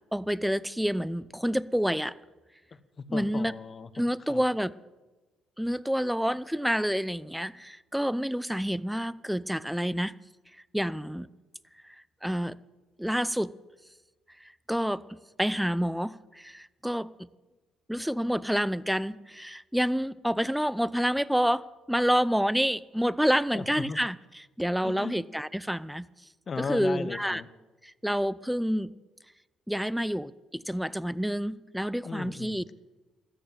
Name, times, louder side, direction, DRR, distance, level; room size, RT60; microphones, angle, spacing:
voice 1, 0.1-2.2 3.1-3.5 3.9-4.7 5.6-10.2 10.7-11.3 12.2-12.6 13.0-13.5 14.7-17.3 17.9-26.1 26.6-27.4 27.8-28.9 29.7-32.6, equal, ahead, 19 dB, 0.6 m, -28 dB
voice 2, 2.7-4.4 23.5-24.0 24.8-25.2 26.5-27.5 32.0-32.7, left 5 dB, 40° left, 13 dB, 1.2 m, -37 dB
13.5 x 9.3 x 9.3 m, 1.2 s
hypercardioid pair, 60°, 0 cm